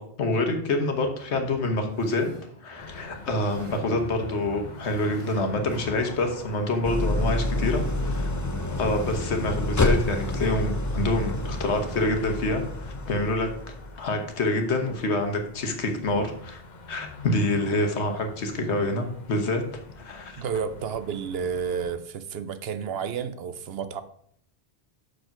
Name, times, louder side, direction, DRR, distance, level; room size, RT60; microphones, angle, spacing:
voice 1, 0.0-2.3 2.6-8.3 8.7-13.5 14.0-16.6 16.9-19.6 20.0-20.4, left 2 dB, 85° left, 5 dB, 1.4 m, -27 dB
sound 1, 1.2-12.5, right 1 dB, 30° right, 1.1 m, -45 dB
sound 2, 2.8-22.0, left 4 dB, 45° left, 1.0 m, -43 dB
Idling, 6.8-13.9, left 1 dB, 25° left, 0.4 m, -28 dB
voice 2, 20.4-24.0, right 6 dB, 70° right, 12 dB, 0.9 m, -31 dB
6.4 x 5.0 x 5.8 m, 0.64 s
omnidirectional pair, 1.1 m